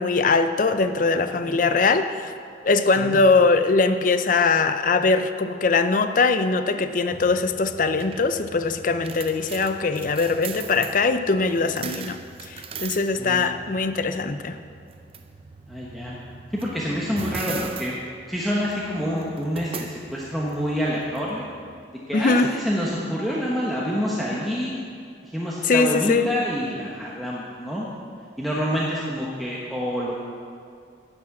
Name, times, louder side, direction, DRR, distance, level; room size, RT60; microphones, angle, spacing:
voice 1, 0.0-2.3 2.6-14.6 22.1-22.5 25.6-26.3, left 4 dB, 50° left, 10 dB, 0.5 m, -21 dB
sound 1, 7.1-21.8, right 5 dB, 35° right, 0.5 m, -40 dB
voice 2, 13.1-13.5 15.7-16.2 16.5-18.0 18.3-21.5 22.1-24.8 25.2-27.9 28.4-30.2, equal, ahead, -6 dB, 1.0 m, -27 dB
10.5 x 6.2 x 7.4 m, 2.4 s
head